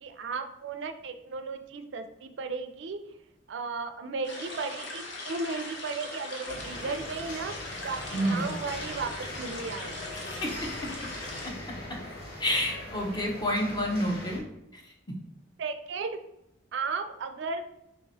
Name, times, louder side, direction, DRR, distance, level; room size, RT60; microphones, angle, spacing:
voice 1, 0.0-3.0 3.5-7.5 7.8-10.2 15.6-16.2 16.7-17.7, right 4 dB, 65° right, 8 dB, 0.4 m, -35 dB
sound 1, 4.2-11.5, left 2 dB, 70° left, 0.8 m, -40 dB
sound 2, 6.4-14.4, left 1 dB, 50° left, 1.3 m, -41 dB
voice 2, 8.1-8.5 10.2-10.9 12.4-14.4 14.7-14.9, equal, 20° left, 1 dB, 0.6 m, -29 dB
3.2 x 2.9 x 4.0 m, 0.82 s
head